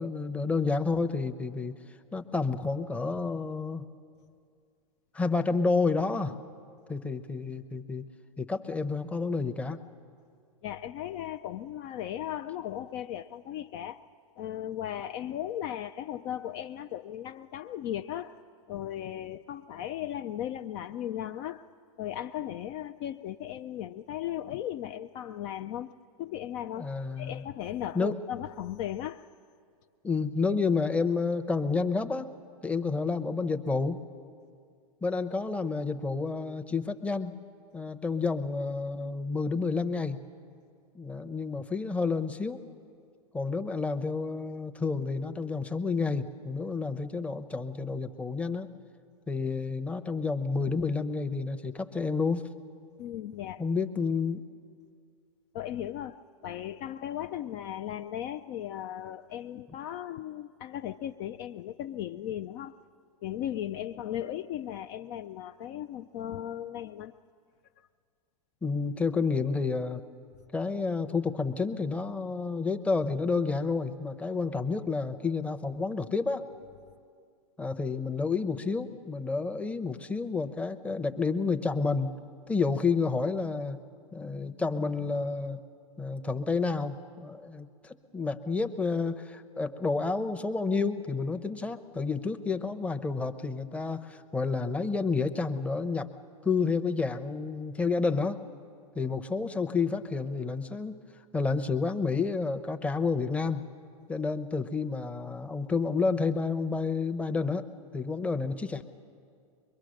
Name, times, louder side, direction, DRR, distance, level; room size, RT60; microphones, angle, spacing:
voice 1, 0.0-1.7 2.1-3.8 5.1-6.3 6.9-8.0 8.4-9.8 26.8-27.4 27.9-28.2 30.0-32.3 32.6-34.0 35.0-37.3 37.7-40.2 40.9-42.6 43.3-48.7 49.3-52.5 53.6-54.4 68.6-70.0 70.5-76.5 77.6-82.1 82.5-83.8 84.1-85.6 86.0-96.1 96.4-98.4 98.9-101.0 101.3-103.7 104.1-107.7 107.9-108.8, left 4 dB, 5° left, 0.8 m, -30 dB
voice 2, 10.6-14.0 14.4-18.4 18.7-21.6 22.0-25.9 26.2-26.9 27.2-29.2 53.0-53.6 55.5-56.2 56.4-62.7 63.2-67.1, left 11 dB, 40° left, 0.5 m, -36 dB
23.0 x 22.5 x 6.5 m
hypercardioid pair, 115°, 19 cm